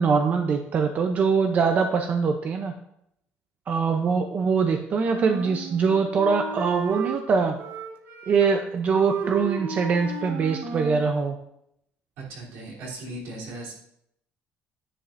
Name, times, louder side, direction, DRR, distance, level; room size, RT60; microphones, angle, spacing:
voice 1, 0.0-2.7 3.7-7.6 8.3-11.4, right 5 dB, 35° right, 5 dB, 0.6 m, -23 dB
Wind instrument woodwind instrument, 5.1-7.2 7.6-8.6 8.9-11.1, right 5 dB, 55° right, 1.0 m, -33 dB
voice 2, 12.2-13.7, right 2 dB, 75° right, -4 dB, 3.4 m, -37 dB
10.5 x 9.9 x 2.6 m, 0.77 s
cardioid pair, 150°, 4 cm